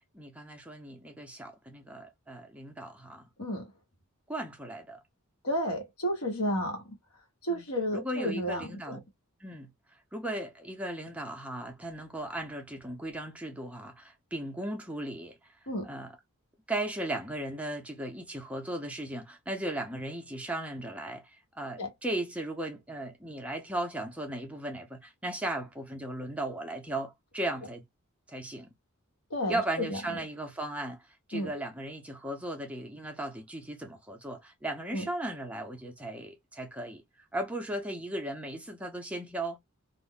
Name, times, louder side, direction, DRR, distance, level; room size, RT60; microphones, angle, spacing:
voice 1, 0.1-3.2 4.3-5.0 6.5-6.7 7.5-7.6 7.9-9.0 9.4-9.7 10.1-15.4 15.8-16.1 16.7-27.8 28.3-28.7 29.5-31.0 31.3-37.0 37.3-39.6, right 1 dB, 5° right, 0.5 m, -36 dB
voice 2, 5.4-6.8 7.4-9.0 15.7-15.9 21.8-21.9 29.3-30.0 31.3-31.5 34.9-35.1, equal, 80° left, 1.2 m, -31 dB
2.4 x 2.0 x 3.7 m
head